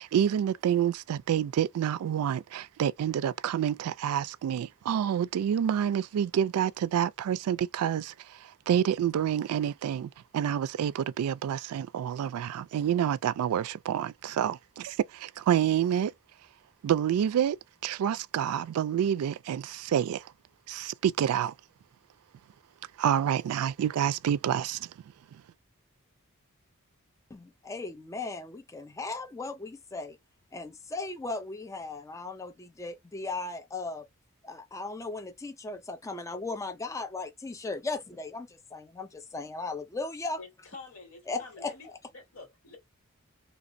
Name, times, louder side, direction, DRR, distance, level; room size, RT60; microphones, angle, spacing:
voice 1, 0.0-16.1 16.8-17.6 17.8-20.3 20.7-21.5 23.0-24.9 25.3-25.4, right 9 dB, 85° right, 0.3 m, -28 dB
voice 2, 27.3-30.2 30.5-34.1 34.4-40.4 41.3-42.0, left 3 dB, 15° left, 0.3 m, -37 dB
voice 3, 40.4-42.8, left 3 dB, 85° left, 1.7 m, -48 dB
2.8 x 2.0 x 2.5 m
head